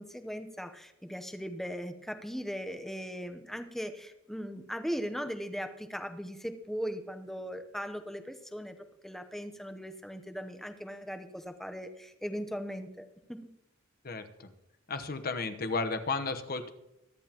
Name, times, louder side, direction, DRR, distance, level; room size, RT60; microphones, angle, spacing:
voice 1, 0.0-8.8 9.0-13.5, equal, ahead, 8 dB, 0.8 m, -39 dB
voice 2, 14.0-14.5 14.9-16.7, left 3 dB, 45° left, 9 dB, 1.0 m, -33 dB
23.0 x 10.5 x 3.0 m, 0.91 s
head